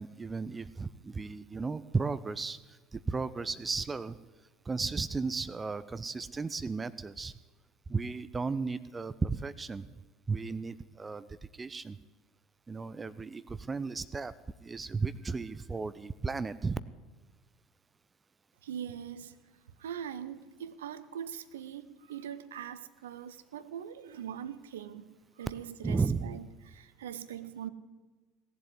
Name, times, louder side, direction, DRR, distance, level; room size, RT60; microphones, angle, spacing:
voice 1, 0.0-4.2 4.7-7.3 7.9-9.9 10.3-11.3 11.5-12.0 12.7-14.3 14.6-16.8 25.8-26.4, right 4 dB, 20° right, 16 dB, 0.5 m, -34 dB
voice 2, 18.6-19.4 19.8-27.7, right 9 dB, 70° right, 13 dB, 0.7 m, -42 dB
17.5 x 7.7 x 9.8 m, 1.3 s
figure-of-eight pair, 65°, 0 cm